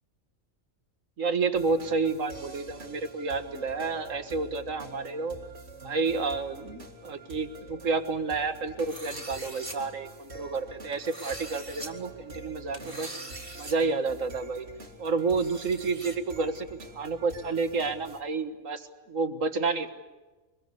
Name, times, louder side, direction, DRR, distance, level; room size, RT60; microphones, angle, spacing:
voice 1, 1.2-5.4 5.8-13.2 13.6-14.7 15.0-16.7 16.9-19.9, right 4 dB, 85° right, 9 dB, 2.0 m, -30 dB
sound 1, 1.5-18.2, right 3 dB, 55° right, 2.5 m, -47 dB
sound 2, 8.8-9.8 10.9-11.9 12.7-13.7 14.1-14.2 15.2-16.2, right 1 dB, 25° right, 3.1 m, -42 dB
24.5 x 21.5 x 8.3 m, 1.2 s
omnidirectional pair, 1.3 m